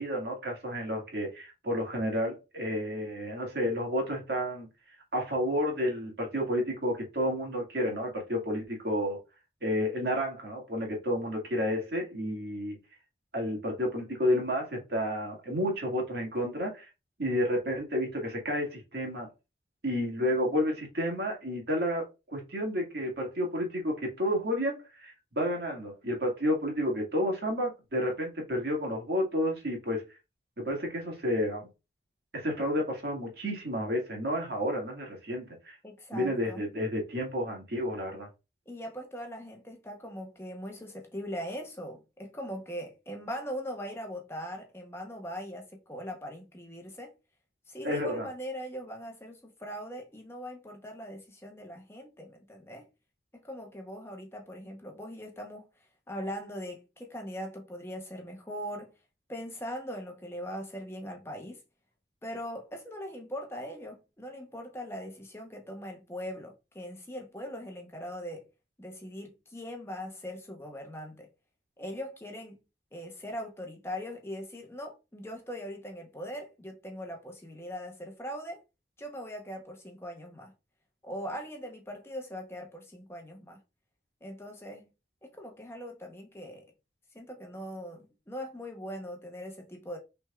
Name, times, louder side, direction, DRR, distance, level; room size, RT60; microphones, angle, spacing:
voice 1, 0.0-4.7 5.1-9.2 9.6-12.8 13.3-16.9 17.2-19.3 19.8-22.1 22.3-30.0 30.6-31.7 32.3-35.8 36.1-38.3 47.8-48.3, equal, 60° right, 1.9 m, -31 dB
voice 2, 35.8-36.6 38.7-47.1 47.7-52.9 53.3-55.7 56.1-58.9 59.3-61.6 62.2-68.5 68.8-71.3 71.8-72.6 72.9-78.6 79.0-80.5 81.0-83.6 84.2-84.8 85.2-86.7 87.1-90.0, equal, 15° left, 0.8 m, -40 dB
6.0 x 3.4 x 2.3 m
head